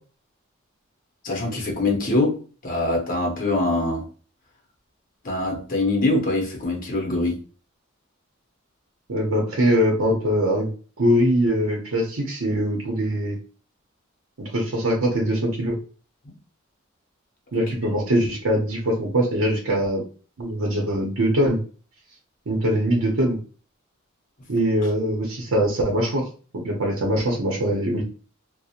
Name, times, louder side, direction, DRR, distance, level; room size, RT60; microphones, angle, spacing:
voice 1, 1.2-4.0 5.2-7.4, left 2 dB, 40° left, 0.7 m, -23 dB
voice 2, 9.1-10.7 11.0-13.4 14.4-15.8 17.5-20.0 20.4-21.6 22.5-23.4 24.5-26.3 26.5-28.0, equal, 85° right, 0.7 m, -22 dB
2.8 x 2.0 x 2.4 m
head